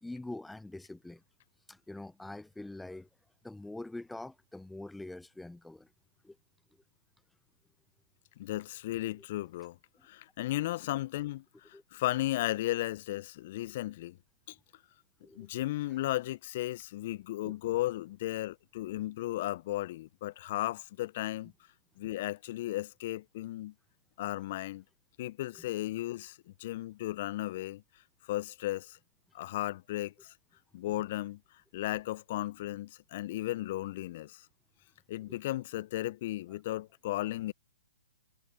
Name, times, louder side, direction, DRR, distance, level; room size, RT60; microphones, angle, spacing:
voice 1, 0.0-1.2 1.7-3.1 3.4-5.9 6.2-6.4 11.7-11.8 15.2-15.5 17.4-17.5, left 2 dB, 5° left, 0.8 m, -44 dB
voice 2, 8.4-9.8 10.0-14.2 14.5-14.6 15.3-21.5 22.0-23.7 24.2-24.8 25.2-27.8 28.3-29.0 29.3-30.3 30.7-31.4 31.7-34.5 35.1-37.5, left 16 dB, 45° left, 0.7 m, -35 dB
figure-of-eight pair, 125°, 0 cm